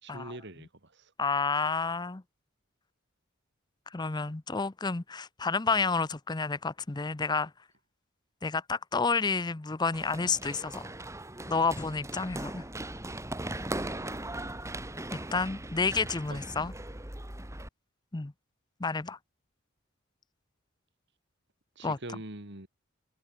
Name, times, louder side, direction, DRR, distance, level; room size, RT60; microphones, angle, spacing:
voice 1, 0.0-1.1 5.7-5.9 16.3-16.4 21.8-22.7, right 1 dB, 55° right, 3.7 m, -43 dB
voice 2, 1.2-2.2 3.9-7.5 8.4-10.9 11.5-12.6 15.1-16.7 18.1-18.3 18.8-19.2 21.8-22.0, left 4 dB, 20° left, 0.6 m, -30 dB
Run, 9.9-17.7, right 1 dB, 15° right, 2.4 m, -39 dB
head